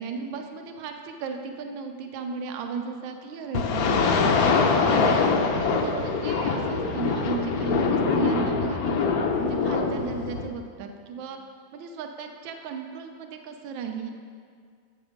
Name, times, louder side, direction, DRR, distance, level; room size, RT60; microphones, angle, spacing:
voice 1, 0.0-4.5 4.9-9.1 9.4-11.4 11.7-14.2, right 6 dB, 80° right, 4 dB, 1.4 m, -35 dB
sound 1, 3.5-10.5, left 4 dB, 65° left, 0.9 m, -23 dB
7.8 x 6.4 x 5.1 m, 2.1 s
omnidirectional pair, 2.1 m